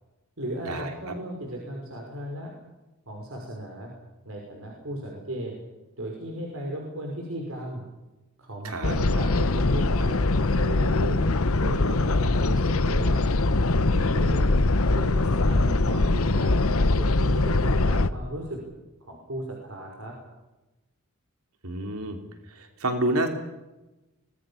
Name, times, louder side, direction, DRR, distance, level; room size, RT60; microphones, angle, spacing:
voice 1, 0.4-2.5 3.1-3.9 4.2-5.6 6.0-7.8 8.4-11.2 11.6-13.2 13.9-14.4 14.9-16.6 17.0-18.6 19.0-20.1, right 1 dB, 65° right, 0 dB, 5.7 m, -35 dB
voice 2, 8.6-9.0 21.6-22.2 22.5-23.3, right 1 dB, 85° right, 5 dB, 3.3 m, -28 dB
sound 1, 8.8-18.1, left 2 dB, 70° left, 1.0 m, -22 dB
25.0 x 20.5 x 7.2 m, 1.0 s
head